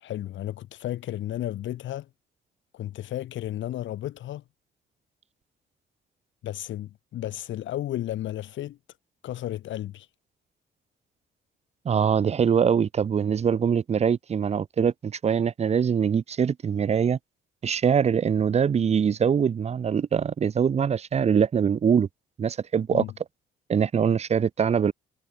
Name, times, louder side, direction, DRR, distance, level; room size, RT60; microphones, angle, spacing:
voice 1, 0.0-2.1 2.7-4.4 6.4-8.8 9.2-10.1 22.9-23.1, left 13 dB, 70° left, 0.9 m, -33 dB
voice 2, 11.8-17.2 17.6-22.1 22.4-23.0 23.7-24.9, right 7 dB, 35° right, 0.5 m, -23 dB
cardioid pair, 90°, 20 cm